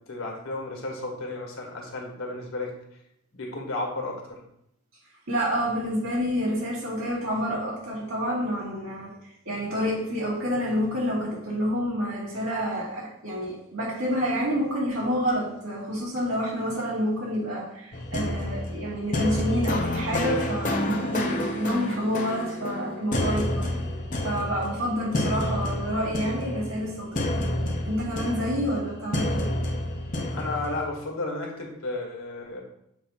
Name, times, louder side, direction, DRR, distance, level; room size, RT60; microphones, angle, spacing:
voice 1, 0.1-2.7 3.3-4.4 30.3-32.6, left 2 dB, 65° left, 0 dB, 1.6 m, -33 dB
voice 2, 5.3-9.1 9.5-23.7 24.2-27.4 27.8-29.5, equal, 65° right, -5 dB, 2.5 m, -28 dB
sound 1, 17.9-30.8, left 1 dB, 35° left, 0.8 m, -29 dB
7.2 x 2.8 x 5.6 m, 0.77 s
head